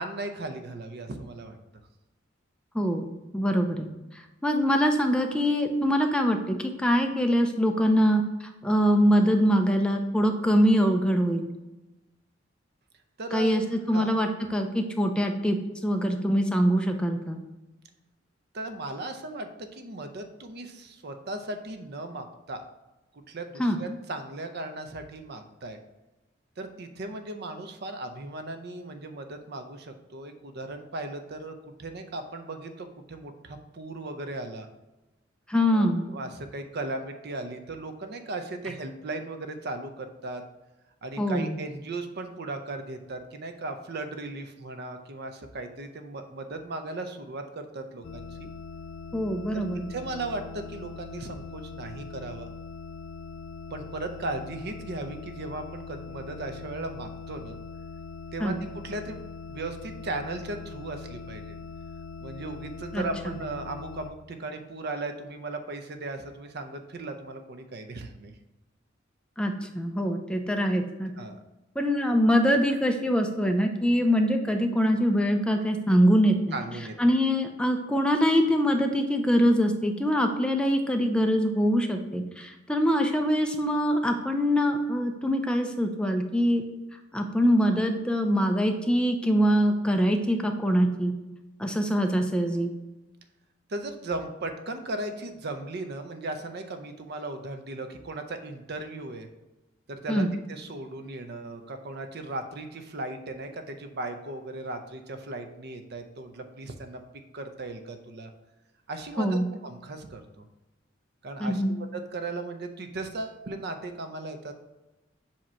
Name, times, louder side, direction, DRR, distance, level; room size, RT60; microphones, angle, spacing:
voice 1, 0.0-1.6 13.2-13.5 13.9-14.1 18.5-22.6 23.3-25.8 26.6-31.5 31.8-34.7 35.7-40.4 41.0-48.5 49.5-49.6 49.9-52.5 53.7-57.6 58.3-61.6 62.2-68.3 71.2-71.4 76.5-77.0 93.7-99.3 99.9-107.0 107.3-108.3 108.9-110.5 111.2-114.5, right 2 dB, 55° right, 7 dB, 0.7 m, -37 dB
voice 2, 2.7-3.9 4.4-8.2 8.6-11.5 13.3-15.6 15.8-17.4 23.6-23.8 35.5-36.1 41.2-41.6 49.1-49.9 58.4-58.6 62.9-63.0 69.4-71.1 71.8-76.6 77.0-86.6 87.1-91.1 91.6-92.7 100.1-100.3 109.2-109.5 111.4-111.8, equal, 5° left, 4 dB, 0.5 m, -24 dB
sound 1, 48.0-64.1, left 4 dB, 75° left, 0.4 m, -41 dB
7.4 x 2.9 x 4.4 m, 1.0 s
head